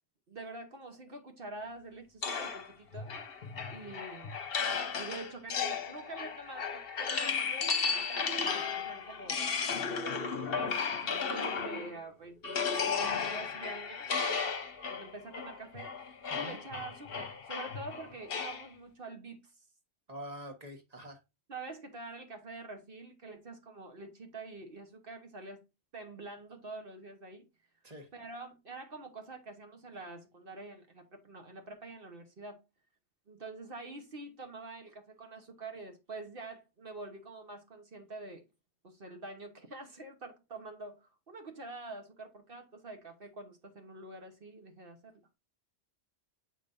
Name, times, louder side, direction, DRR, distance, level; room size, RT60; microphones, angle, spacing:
voice 1, 0.3-3.1 3.7-4.4 4.9-9.5 10.5-14.4 14.9-19.5 21.5-25.6 25.9-27.4 28.1-32.6 33.3-38.4 38.8-45.2, right 2 dB, 55° right, 1.2 m, -46 dB
sound 1, 2.2-12.0 12.4-18.7, left 5 dB, 55° left, 1.0 m, -34 dB
voice 2, 20.1-21.2 27.8-28.1, equal, 35° right, 1.4 m, -45 dB
7.6 x 5.1 x 2.6 m
omnidirectional pair, 1.2 m